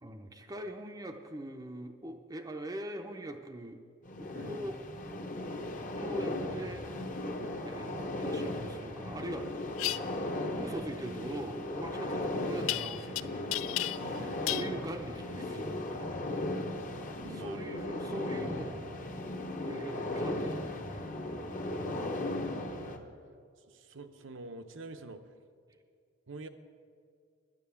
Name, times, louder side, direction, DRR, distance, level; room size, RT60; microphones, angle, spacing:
voice 1, 0.0-3.8 4.2-4.8 6.0-6.8 7.6-9.5 10.6-13.6 14.5-16.5 17.3-18.9 19.6-21.0 21.4-22.4, right 1 dB, 20° right, 4 dB, 0.5 m, -42 dB
sound 1, 4.0-23.0, left 1 dB, 40° left, 1.0 m, -37 dB
sound 2, 9.8-10.0 12.7-13.2 13.5-14.2 14.5-14.7, left 16 dB, 90° left, 0.3 m, -32 dB
voice 2, 14.0-14.6 17.2-18.0 21.4-23.1 23.6-25.2 26.3-26.5, right 2 dB, 70° right, 9 dB, 0.8 m, -48 dB
10.5 x 9.7 x 7.0 m, 2.2 s
head